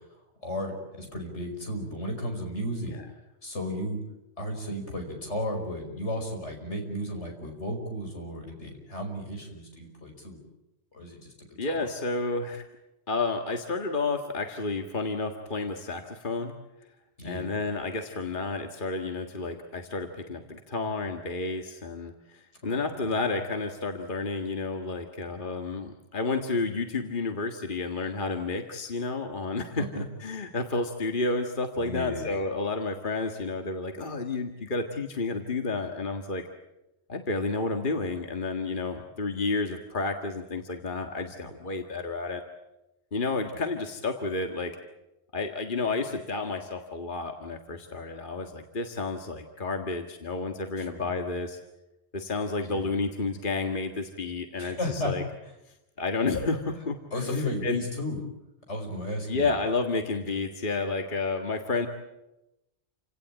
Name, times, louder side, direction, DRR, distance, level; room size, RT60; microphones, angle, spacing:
voice 1, 0.4-2.9 3.4-4.0 4.4-10.4 10.9-11.9 17.2-17.5 22.7-22.9 29.7-30.0 31.8-32.3 50.8-51.1 52.6-52.9 54.6-55.1 57.1-58.2 58.7-59.6, equal, 80° left, 3 dB, 5.6 m, -34 dB
voice 2, 11.6-12.6 13.1-16.5 17.2-36.5 37.1-42.4 43.1-44.8 45.3-51.6 52.1-55.2 56.0-57.8 59.3-61.9, left 3 dB, 45° left, 5 dB, 1.9 m, -31 dB
29.0 x 17.5 x 9.0 m, 0.93 s
omnidirectional pair, 1.2 m